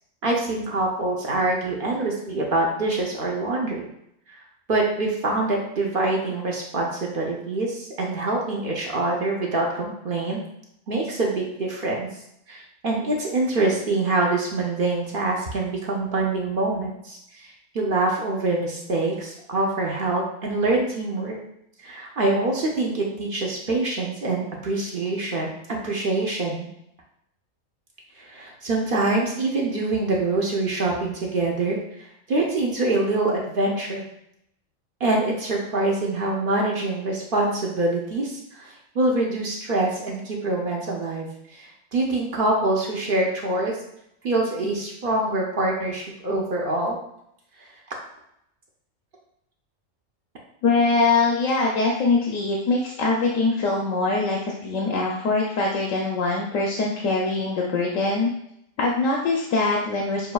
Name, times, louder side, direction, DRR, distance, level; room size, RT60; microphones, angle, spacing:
voice 1, 0.2-3.9 4.3-4.4 4.7-10.4 10.9-12.1 12.5-21.4 21.8-25.5 25.8-26.7 28.2-31.8 32.3-34.0 35.0-43.8 44.2-47.0, right 2 dB, 50° right, -1 dB, 0.8 m, -25 dB
voice 2, 50.6-58.3 58.8-60.3, left 3 dB, 80° left, -1 dB, 1.0 m, -23 dB
6.7 x 2.6 x 2.3 m, 0.77 s
omnidirectional pair, 1.3 m